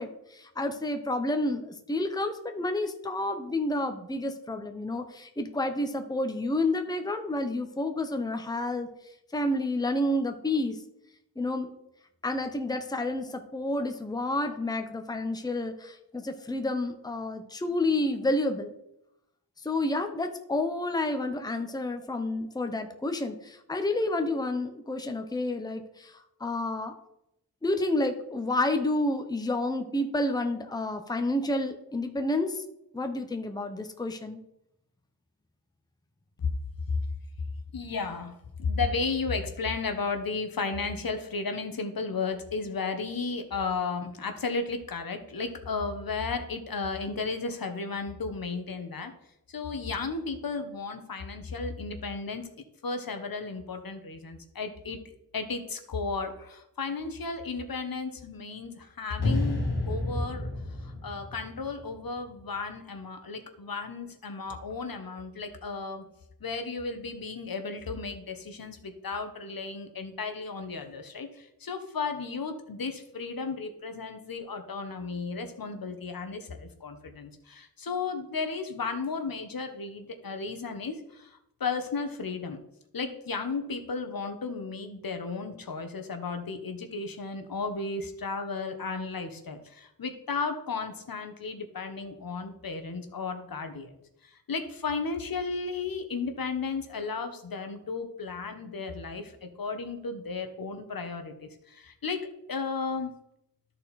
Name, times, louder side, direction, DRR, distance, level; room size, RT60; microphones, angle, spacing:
voice 1, 0.0-8.9 9.3-10.8 11.4-11.7 12.2-18.7 19.6-26.9 27.6-32.6 32.9-34.4, left 2 dB, 10° left, 6 dB, 0.8 m, -30 dB
voice 2, 37.7-38.3 38.6-49.1 49.5-52.5 52.8-59.6 59.9-60.5 60.8-66.1 66.4-82.6 82.9-94.0 94.2-101.3 101.7-103.1, left 4 dB, 60° left, 6 dB, 1.1 m, -34 dB
sound 1, 59.2-62.4, left 2 dB, 90° left, 2.3 m, -31 dB
13.0 x 4.4 x 4.1 m, 0.82 s
wide cardioid pair, 75°, 39 cm